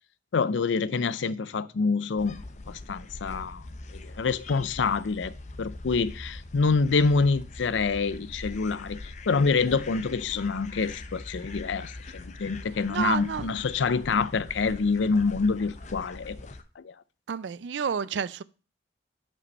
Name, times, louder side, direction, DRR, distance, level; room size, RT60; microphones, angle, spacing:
voice 1, 0.3-2.4 2.7-3.6 3.9-16.4 16.8-16.9, left 4 dB, 90° left, 0.5 m, -26 dB
sound 1, 2.2-16.6, left 2 dB, 40° left, 0.6 m, -42 dB
voice 2, 12.9-13.5 17.3-18.4, right 7 dB, 80° right, 0.4 m, -30 dB
8.5 x 5.3 x 5.3 m
head